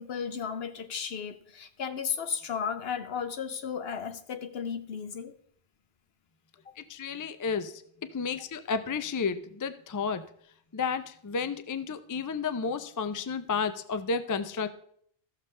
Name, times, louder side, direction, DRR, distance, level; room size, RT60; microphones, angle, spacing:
voice 1, 0.0-5.3 6.7-6.8, left 7 dB, 75° left, 9 dB, 1.0 m, -34 dB
voice 2, 6.8-7.8 8.1-10.2 10.7-14.7, left 5 dB, 35° left, 11 dB, 0.3 m, -32 dB
15.0 x 6.6 x 3.2 m, 0.63 s
omnidirectional pair, 1.1 m